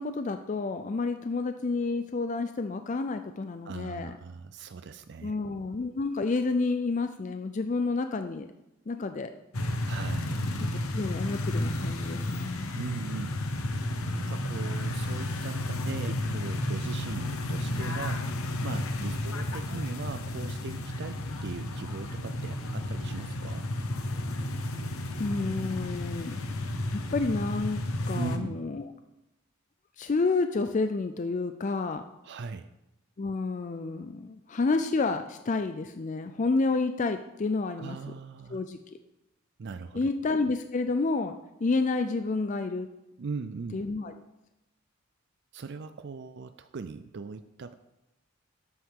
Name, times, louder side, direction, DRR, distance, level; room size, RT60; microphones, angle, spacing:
voice 1, 0.0-4.2 5.2-8.5 8.9-9.3 10.9-12.7 25.2-26.4 26.9-27.8 28.1-28.9 30.0-32.0 33.2-38.0 38.5-38.8 39.9-42.9 43.7-44.1, left 3 dB, 35° left, 8 dB, 0.4 m, -29 dB
voice 2, 3.6-5.4 9.9-10.5 12.7-13.4 14.1-23.7 28.1-28.6 32.2-32.7 37.8-38.6 39.6-40.1 43.2-43.8 45.5-47.7, right 4 dB, 55° right, 10 dB, 0.4 m, -39 dB
sound 1, 9.5-28.4, left 1 dB, 90° left, 1.1 m, -32 dB
12.5 x 8.6 x 3.7 m, 0.94 s
head